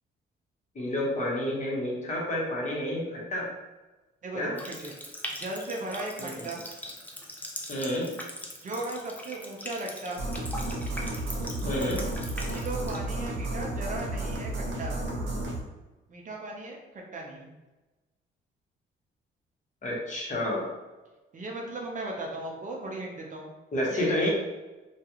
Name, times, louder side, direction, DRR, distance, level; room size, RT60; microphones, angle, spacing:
voice 1, 0.7-3.5 4.3-4.5 6.2-6.4 7.7-8.1 11.6-12.1 19.8-20.7 23.7-24.3, left 1 dB, 40° left, -4 dB, 1.0 m, -29 dB
voice 2, 4.2-4.9 5.3-6.6 8.6-10.2 12.4-15.0 16.1-17.5 21.3-23.5 23.9-24.3, right 2 dB, 40° right, -1 dB, 0.6 m, -37 dB
Water tap faucet, 4.6-13.0, left 1 dB, 10° left, 0.5 m, -41 dB
sound 1, 10.2-15.6, right 1 dB, 70° right, 0.8 m, -32 dB
2.4 x 2.3 x 2.9 m, 1.1 s
cardioid pair, 90°, 20 cm